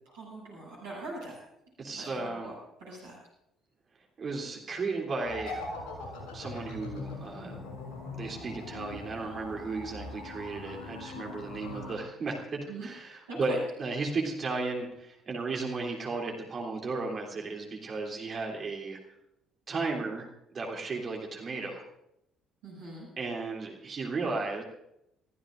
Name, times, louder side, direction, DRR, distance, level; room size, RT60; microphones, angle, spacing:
voice 1, 0.1-1.4 1.9-2.5 2.8-3.2 12.7-12.9 13.3-13.6 22.6-23.1, right 2 dB, 70° right, -6 dB, 8.0 m, -42 dB
voice 2, 1.8-2.5 4.2-5.6 6.3-7.6 8.1-19.0 19.7-21.8 23.2-24.6, right 3 dB, 40° right, 0 dB, 3.2 m, -34 dB
sound 1, 5.2-11.9, left 2 dB, 55° left, 6.5 m, -41 dB
27.0 x 15.0 x 2.6 m, 0.82 s
figure-of-eight pair, 50°, 0 cm